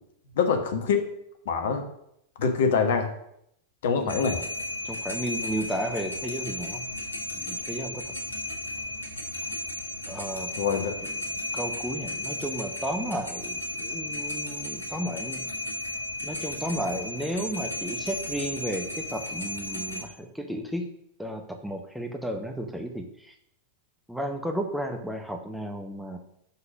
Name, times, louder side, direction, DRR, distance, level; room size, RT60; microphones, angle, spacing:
voice 1, 0.4-1.1 1.4-1.9 2.4-3.1 3.8-4.4 10.6-11.0, left 6 dB, 55° left, 5 dB, 1.2 m, -24 dB
sound 1, 4.1-20.0, left 1 dB, 85° left, 1.3 m, -34 dB
voice 2, 4.8-6.8 7.4-8.1 10.1-10.5 11.0-11.2 11.5-15.5 16.2-20.9 21.2-23.3 24.1-26.2, equal, ahead, 3 dB, 0.9 m, -33 dB
5.9 x 5.7 x 6.0 m, 0.75 s
figure-of-eight pair, 90°, 0 cm